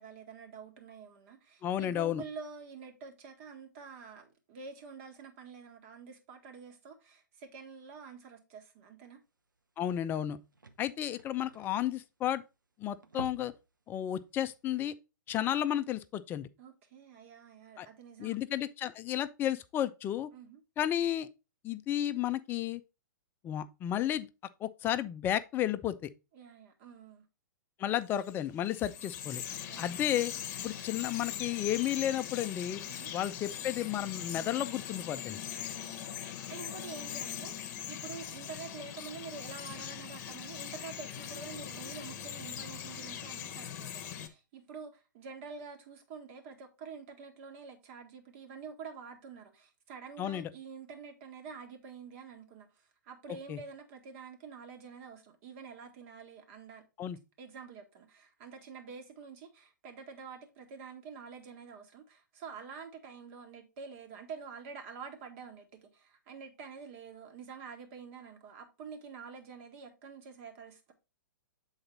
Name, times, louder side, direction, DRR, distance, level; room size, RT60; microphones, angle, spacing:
voice 1, 0.0-9.2 16.6-18.4 20.3-20.6 26.3-27.2 29.7-30.0 32.9-33.1 35.7-56.8 57.4-70.9, right 5 dB, 40° right, 1.7 m, -48 dB
voice 2, 1.6-2.2 9.8-10.4 10.8-12.4 12.8-13.5 13.9-14.9 15.3-16.5 17.8-17.9 18.2-20.3 20.8-21.3 21.6-22.8 23.4-24.3 24.6-26.1 27.8-29.4 29.8-30.3 30.6-32.8 33.1-35.4 50.2-50.5 53.5-53.6 57.0-57.2, left 11 dB, 20° left, 0.4 m, -32 dB
sound 1, 9.6-9.7 9.9-10.0 10.2-12.5 12.9-13.7 14.0-14.2 14.6-14.7, right 3 dB, 80° right, 0.9 m, -49 dB
Bird vocalization bird call bird song, 28.1-44.3, left 10 dB, 40° left, 1.0 m, -41 dB
7.9 x 4.0 x 4.0 m
figure-of-eight pair, 115°, 10 cm